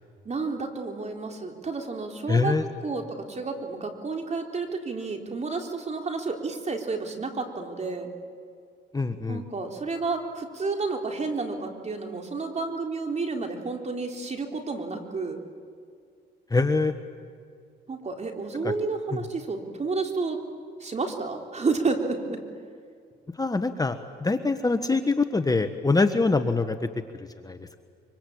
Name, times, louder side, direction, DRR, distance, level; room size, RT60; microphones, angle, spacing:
voice 1, 0.3-8.1 9.3-15.4 17.9-20.4 20.8-22.4, right 4 dB, 35° right, 3 dB, 3.8 m, -31 dB
voice 2, 2.3-2.6 8.9-9.4 16.5-16.9 19.1-19.2 23.4-26.8 27.4-27.8, left 3 dB, 20° left, 8 dB, 1.3 m, -24 dB
25.0 x 24.5 x 8.6 m, 2.2 s
cardioid pair, 90°, 20 cm